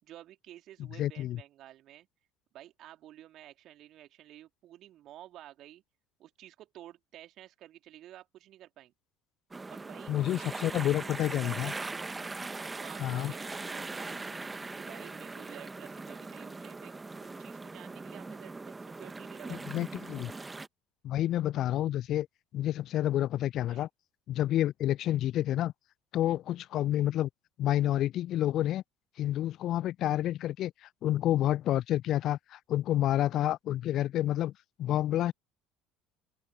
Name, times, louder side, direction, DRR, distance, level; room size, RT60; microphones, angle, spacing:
voice 1, 0.0-2.1 2.5-5.8 6.2-8.9 9.7-10.9 11.2-11.8 12.8-14.4 14.8-16.9 17.2-20.0 23.7-23.8 26.2-26.4, right 13 dB, 50° right, 3.2 m, -52 dB
voice 2, 1.0-1.4 10.1-11.7 13.0-13.3 19.7-20.3 21.0-22.3 22.5-23.9 24.3-25.7 26.1-27.3 27.6-28.8 29.2-34.5 34.8-35.3, left 13 dB, 50° left, 0.3 m, -29 dB
sound 1, 9.5-20.7, right 3 dB, 15° right, 1.5 m, -41 dB
open air
figure-of-eight pair, 60°, 0 cm